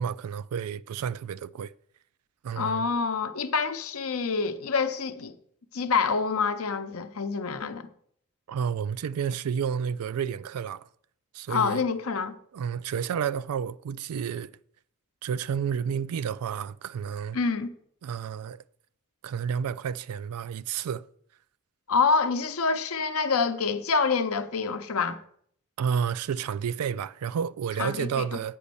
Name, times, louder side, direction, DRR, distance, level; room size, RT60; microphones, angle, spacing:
voice 1, 0.0-1.7 2.4-2.9 8.5-10.9 11.3-11.8 12.5-14.5 15.2-17.4 18.0-18.6 19.2-21.1 25.8-28.6, right 7 dB, 90° right, 0.4 m, -30 dB
voice 2, 2.6-5.3 5.7-7.9 11.5-12.3 17.3-17.7 21.9-25.2 27.8-28.4, left 5 dB, 70° left, 0.7 m, -27 dB
8.5 x 5.2 x 6.9 m
head